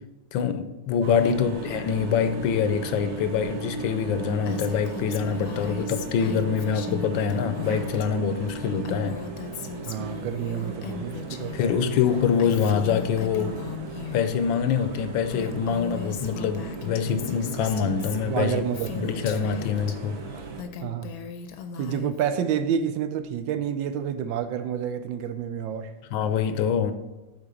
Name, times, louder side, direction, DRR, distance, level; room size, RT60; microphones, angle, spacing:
voice 1, 0.3-9.2 11.5-13.6 14.1-18.6 18.9-20.2 26.1-26.9, left 7 dB, 80° left, 1.4 m, -25 dB
sound 1, 1.0-20.6, right 4 dB, 55° right, 1.4 m, -37 dB
Female speech woman speaking, 4.5-8.1 8.3-11.6 11.9-14.3 14.9-15.0 15.3-20.0 20.4-22.3, left 7 dB, 65° left, 1.1 m, -38 dB
voice 2, 9.9-12.0 18.2-19.1 20.8-21.1 21.8-25.9, right 8 dB, 80° right, 1.4 m, -29 dB
8.8 x 4.1 x 6.9 m
omnidirectional pair, 2.1 m